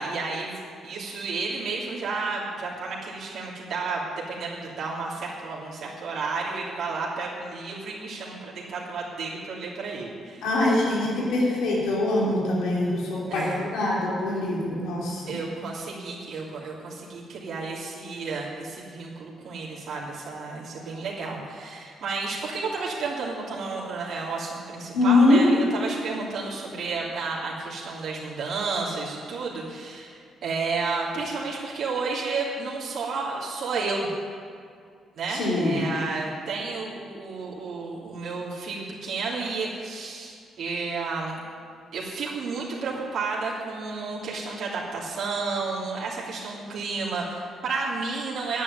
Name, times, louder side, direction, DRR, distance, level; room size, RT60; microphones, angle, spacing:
voice 1, 0.0-10.8 13.3-13.6 15.3-34.1 35.2-41.4 41.9-48.6, right 4 dB, 65° right, -6 dB, 3.3 m, -32 dB
voice 2, 10.4-15.4 24.9-25.4 35.3-35.8, left 2 dB, 80° left, -5 dB, 4.7 m, -23 dB
10.0 x 9.8 x 9.6 m, 2.2 s
cardioid pair, 90°, 0 cm